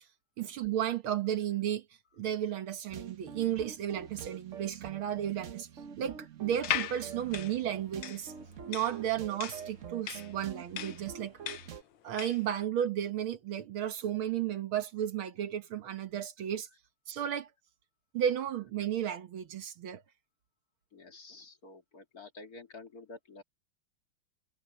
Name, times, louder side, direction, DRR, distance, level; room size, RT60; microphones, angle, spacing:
voice 1, 0.4-1.8 2.2-5.7 6.0-8.3 8.7-11.4 12.0-16.7 17.1-17.5 18.1-20.0, right 10 dB, 85° right, 2.2 m, -33 dB
sound 1, 2.9-11.8, right 8 dB, 50° right, 1.0 m, -46 dB
sound 2, 6.5-12.5, left 11 dB, 75° left, 1.7 m, -38 dB
voice 2, 20.9-23.4, left 3 dB, 45° left, 2.6 m, -50 dB
omnidirectional pair, 2.2 m